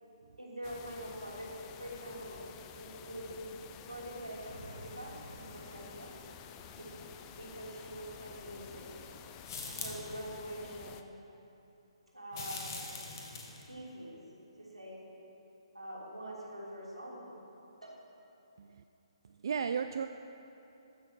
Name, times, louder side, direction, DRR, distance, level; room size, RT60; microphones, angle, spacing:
voice 1, 0.4-2.5 2.7-3.5 3.9-6.1 6.7-6.9 7.4-8.9 9.7-11.1 12.1-12.9 13.7-14.2 14.6-15.0 15.7-17.4 17.8-18.0, equal, 85° right, -5 dB, 3.1 m, -44 dB
sound 1, 0.6-11.0, left 8 dB, 20° left, 0.4 m, -51 dB
sound 2, 4.3-9.5, right 1 dB, 90° left, 2.1 m, -55 dB
sound 3, 9.4-10.2 12.3-13.7, left 4 dB, 40° left, 1.6 m, -42 dB
voice 2, 19.2-20.1, right 6 dB, 50° right, 9 dB, 0.3 m, -35 dB
14.0 x 6.4 x 6.2 m, 2.9 s
figure-of-eight pair, 135°, 3 cm